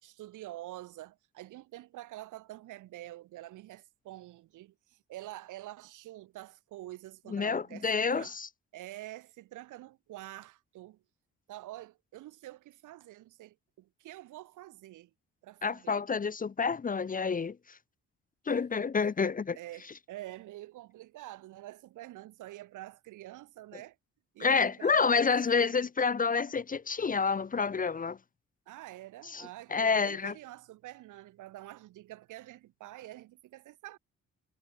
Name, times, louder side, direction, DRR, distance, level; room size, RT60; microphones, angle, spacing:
voice 1, 0.0-8.4 8.7-11.0 11.5-15.1 15.4-16.0 18.5-18.8 19.2-24.0 24.3-25.9 28.7-34.0, right 15 dB, 90° right, 3.6 m, -47 dB
voice 2, 7.3-8.5 15.6-17.8 18.5-19.6 24.4-28.2 29.3-30.3, left 5 dB, 25° left, 0.8 m, -29 dB
cardioid pair, 90°, 30 cm